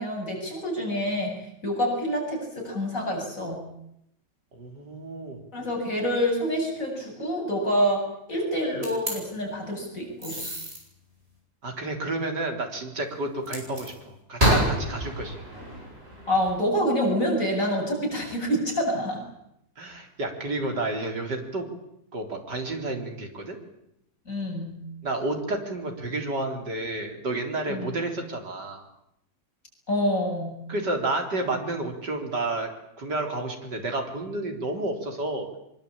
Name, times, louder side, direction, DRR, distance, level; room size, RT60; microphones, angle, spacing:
voice 1, 0.0-1.3 1.6-3.6 5.5-8.0 8.3-10.4 16.3-19.2 24.3-24.8 27.7-27.9 29.9-30.6, equal, 50° left, -1 dB, 8.6 m, -27 dB
voice 2, 4.5-5.4 11.6-15.4 19.8-21.7 22.1-23.6 25.0-28.8 30.7-32.7 33.0-35.5, right 2 dB, 80° right, 3 dB, 4.6 m, -30 dB
sound 1, 8.8-9.1 10.2-10.8 13.5-13.9 14.4-16.6, right 1 dB, 35° right, 8.4 m, -27 dB
24.0 x 23.5 x 8.8 m, 0.78 s
omnidirectional pair, 1.8 m